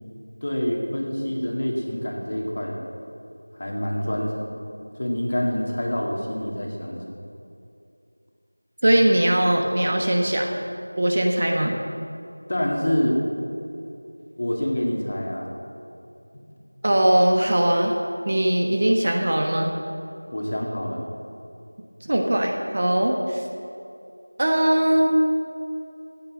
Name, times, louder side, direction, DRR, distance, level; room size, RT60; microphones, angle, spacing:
voice 1, 0.4-2.8 3.6-4.6 5.0-7.2 12.5-13.2 14.4-15.5 20.3-21.0, equal, 30° left, -1 dB, 2.1 m, -26 dB
voice 2, 8.8-10.5 11.0-11.7 16.8-17.9 18.3-19.7 22.0-23.4 24.4-25.4, right 1 dB, 30° right, 2 dB, 1.1 m, -20 dB
15.5 x 9.4 x 7.8 m, 2.6 s
figure-of-eight pair, 175°, 0 cm